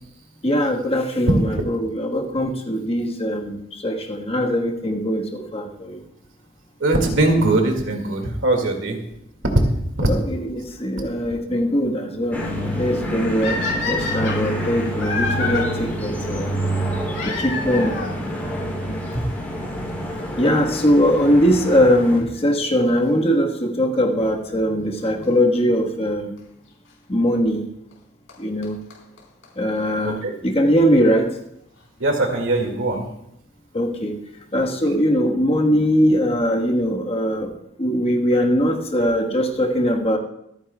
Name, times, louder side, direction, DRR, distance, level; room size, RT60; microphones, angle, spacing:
voice 1, 0.4-1.4 1.7-3.6 3.8-5.9 10.1-13.6 13.9-16.5 17.2-17.9 20.4-26.3 27.1-27.6 28.4-28.8 29.6-30.2 30.4-31.3 33.7-34.2 34.5-37.5 37.8-40.2, equal, 30° left, 1 dB, 1.4 m, -20 dB
voice 2, 6.8-9.0 10.0-10.1 30.0-30.3 32.0-33.1, right 2 dB, 70° right, 2 dB, 2.2 m, -21 dB
sound 1, 12.3-22.2, equal, 10° left, 3.1 m, -28 dB
sound 2, 13.4-15.6 17.1-18.2 19.1-19.2 19.9-20.0 20.2-20.3 22.2-22.4 25.2-25.3 26.4-26.5 27.9-28.0 28.3-28.4 28.6-28.7 28.9-29.0 29.2-29.3 29.4-29.5 29.8-29.9, left 4 dB, 70° left, 4.3 m, -27 dB
24.5 x 9.8 x 2.4 m, 0.80 s
head